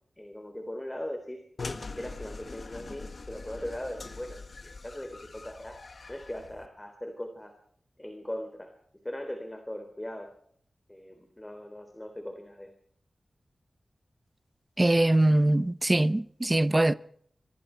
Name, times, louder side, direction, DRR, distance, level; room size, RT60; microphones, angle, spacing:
voice 1, 0.2-1.4 2.0-5.8 6.1-7.5 8.0-8.7 9.0-10.3 10.9-12.7, left 1 dB, 15° left, 3.5 m, -39 dB
sound 1, 1.6-6.7, left 3 dB, 55° left, 1.6 m, -42 dB
voice 2, 14.8-16.9, right 1 dB, 20° right, 0.8 m, -22 dB
25.0 x 25.0 x 4.6 m
wide cardioid pair, 105°, 0 cm